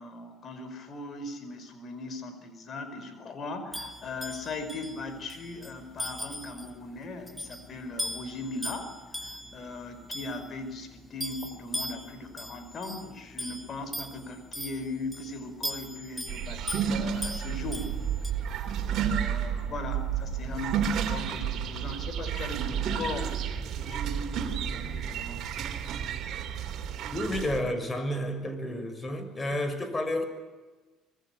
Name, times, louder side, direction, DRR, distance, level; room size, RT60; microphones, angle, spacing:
voice 1, 0.0-17.9 18.4-23.4 23.7-25.5, left 2 dB, 45° left, 9 dB, 5.3 m, -39 dB
sound 1, 3.7-18.3, equal, ahead, 3.3 m, -40 dB
sound 2, 16.3-27.6, right 8 dB, 55° right, 3.4 m, -31 dB
voice 2, 27.1-30.2, left 1 dB, 25° left, 9 dB, 6.2 m, -31 dB
25.5 x 22.0 x 8.5 m, 1.3 s
hypercardioid pair, 60°, 0 cm